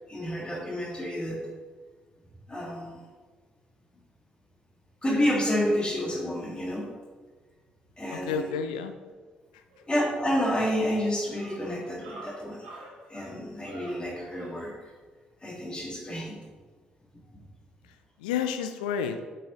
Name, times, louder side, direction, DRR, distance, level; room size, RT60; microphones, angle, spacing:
voice 1, 0.1-1.4 2.5-3.0 5.0-6.9 8.0-8.5 9.9-12.6 13.1-14.7 15.4-16.4, equal, 20° left, -3 dB, 1.9 m, -29 dB
voice 2, 8.1-8.9 9.5-9.6 17.8-19.2, left 7 dB, 80° left, 9 dB, 0.4 m, -31 dB
sound 1, 9.2-9.3 9.7-14.7, right 1 dB, 75° right, 1.6 m, -47 dB
8.5 x 5.6 x 3.0 m, 1.4 s
figure-of-eight pair, 40°, 4 cm